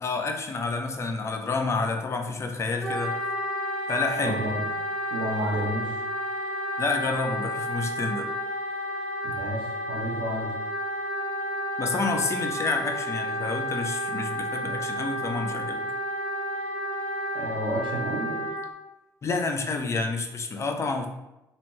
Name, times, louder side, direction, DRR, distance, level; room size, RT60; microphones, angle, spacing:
voice 1, 0.0-3.1 3.9-4.4 6.8-8.3 11.8-15.8 19.2-21.1, left 3 dB, 35° left, 4 dB, 0.4 m, -29 dB
Wind instrument woodwind instrument, 2.8-18.7, equal, 10° left, 0.9 m, -31 dB
voice 2, 4.2-4.6 5.1-5.9 9.2-10.5 17.3-18.4, right 1 dB, 70° right, 0 dB, 0.6 m, -31 dB
2.7 x 2.1 x 3.0 m, 0.94 s
cardioid pair, 85°, 8 cm